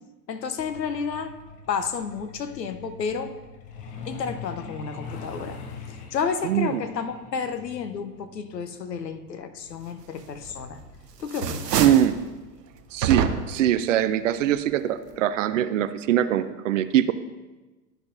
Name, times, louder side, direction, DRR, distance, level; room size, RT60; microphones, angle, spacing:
voice 1, 0.3-1.4 1.7-3.4 4.0-5.6 5.9-10.8 11.2-11.8, left 6 dB, 80° left, 10 dB, 0.8 m, -31 dB
Truck, 0.6-12.9 14.1-14.3 14.7-14.9 15.2-15.5 15.8-15.9 16.4-16.5, left 4 dB, 15° left, 0.4 m, -43 dB
voice 2, 6.4-6.8 11.8-12.2 12.9-17.1, right 11 dB, 50° right, 13 dB, 0.5 m, -22 dB
sound 1, 10.4-10.9 11.2-12.2 13.0-13.7, right 7 dB, 75° right, 0.8 m, -26 dB
12.0 x 5.7 x 2.6 m, 1.2 s
figure-of-eight pair, 100°, 49 cm